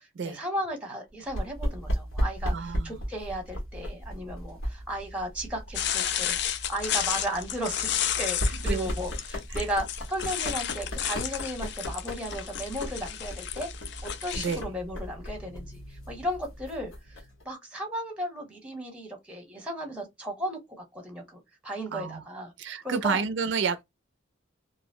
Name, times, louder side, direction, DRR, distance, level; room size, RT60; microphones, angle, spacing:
voice 1, 0.0-6.4 6.7-7.9 8.2-13.7 14.0-16.9 17.4-22.5 22.8-23.2, equal, 5° right, 0.9 m, -35 dB
sound 1, 1.3-17.4, equal, 85° left, 1.1 m, -35 dB
voice 2, 2.5-3.0 8.6-8.9 9.5-9.6 14.4-14.7 21.9-22.2 22.6-23.8, right 5 dB, 60° right, 0.3 m, -30 dB
sound 2, 5.7-14.6, left 10 dB, 55° left, 0.3 m, -32 dB
2.5 x 2.0 x 2.5 m
head